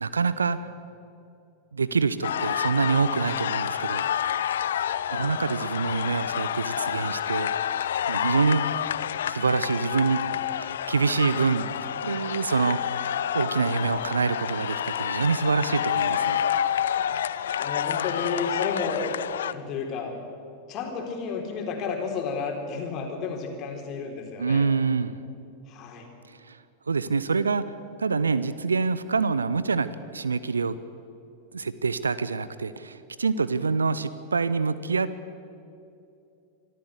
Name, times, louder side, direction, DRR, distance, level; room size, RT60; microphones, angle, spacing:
voice 1, 0.0-0.6 1.7-4.0 5.1-8.6 9.2-16.4 24.4-25.2 26.3-26.6 26.9-27.6 28.0-30.8 31.5-35.1, right 4 dB, 75° right, 15 dB, 0.7 m, -26 dB
sound 1, 2.2-19.5, left 10 dB, 60° left, 0.5 m, -29 dB
voice 2, 17.6-19.1 19.4-20.1 20.7-24.7 25.7-26.1, left 5 dB, 35° left, 2 dB, 3.7 m, -32 dB
25.0 x 14.0 x 7.9 m, 2.6 s
figure-of-eight pair, 90°, 0 cm